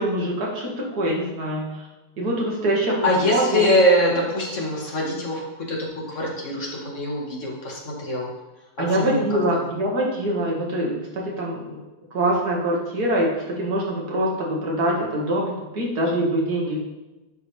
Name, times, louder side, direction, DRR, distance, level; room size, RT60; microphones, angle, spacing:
voice 1, 0.0-1.8 2.2-3.7 8.8-11.8 12.1-16.8, right 1 dB, 90° right, -2 dB, 2.1 m, -24 dB
voice 2, 3.0-5.8 6.1-8.3 8.9-9.6, equal, 55° left, -2 dB, 1.8 m, -23 dB
9.9 x 4.7 x 3.3 m, 1.0 s
omnidirectional pair, 1.6 m